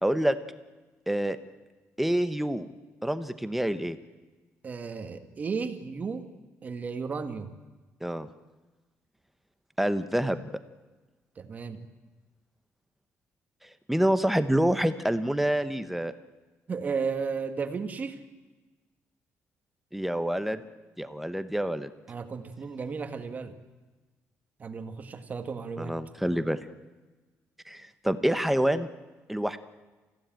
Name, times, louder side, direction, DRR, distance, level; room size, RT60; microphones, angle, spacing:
voice 1, 0.0-0.4 1.1-1.4 2.0-2.7 3.0-4.0 8.0-8.3 9.8-10.5 13.9-16.1 19.9-20.6 21.0-21.9 25.8-26.7 27.7-28.9 29.3-29.6, right 1 dB, 5° right, 11 dB, 0.9 m, -27 dB
voice 2, 4.6-6.2 6.6-7.5 11.3-11.8 16.7-18.2 22.1-23.5 24.6-26.0, right 5 dB, 30° right, 8 dB, 1.7 m, -34 dB
28.0 x 15.5 x 9.0 m, 1.2 s
cardioid pair, 160°, 5 cm